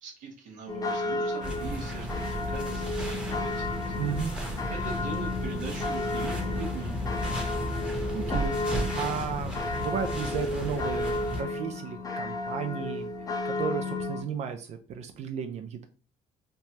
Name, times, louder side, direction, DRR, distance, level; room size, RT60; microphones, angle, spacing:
voice 1, 0.0-3.9 4.7-7.0, right 3 dB, 75° right, 1 dB, 0.9 m, -41 dB
sound 1, 0.7-14.2, left 2 dB, 25° left, 0.6 m, -33 dB
sound 2, 1.4-11.4, equal, 5° right, 0.9 m, -34 dB
voice 2, 4.0-4.3 8.1-8.6 8.9-13.1 13.4-15.9, right 7 dB, 55° right, 6 dB, 0.4 m, -34 dB
3.2 x 2.1 x 2.8 m, 0.37 s
cardioid pair, 100°, 13 cm